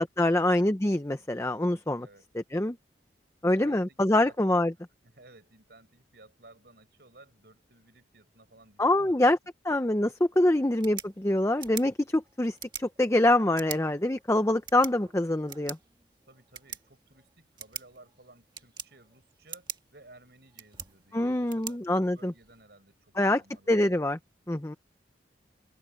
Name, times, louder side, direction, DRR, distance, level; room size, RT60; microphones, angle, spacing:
voice 1, 0.0-2.1 2.5-2.8 3.4-4.7 8.8-9.4 9.6-15.8 21.1-22.3 23.2-23.4 23.7-24.2 24.5-24.8, left 1 dB, 15° left, 0.6 m, -25 dB
voice 2, 3.4-4.4 5.0-9.3 10.3-10.7 16.3-23.9, right 2 dB, 60° right, 6.5 m, -57 dB
sound 1, 10.6-22.6, right 7 dB, 25° right, 1.5 m, -45 dB
open air
head